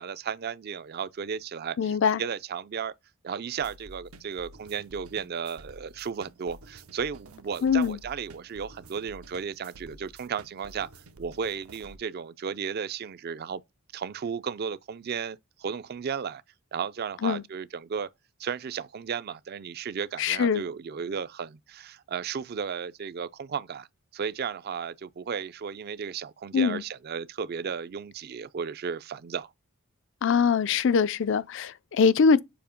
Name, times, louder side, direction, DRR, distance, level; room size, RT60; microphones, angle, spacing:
voice 1, 0.0-2.9 3.2-10.9 11.2-13.6 13.9-16.4 16.7-18.1 18.4-23.9 24.1-29.5, right 6 dB, 45° right, 0.4 m, -34 dB
voice 2, 1.8-2.2 7.6-8.0 17.2-17.4 20.2-20.6 26.5-26.8 30.2-32.4, left 6 dB, 60° left, 0.4 m, -23 dB
sound 1, 3.6-12.0, right 2 dB, 90° right, 0.8 m, -50 dB
7.0 x 2.8 x 5.1 m
head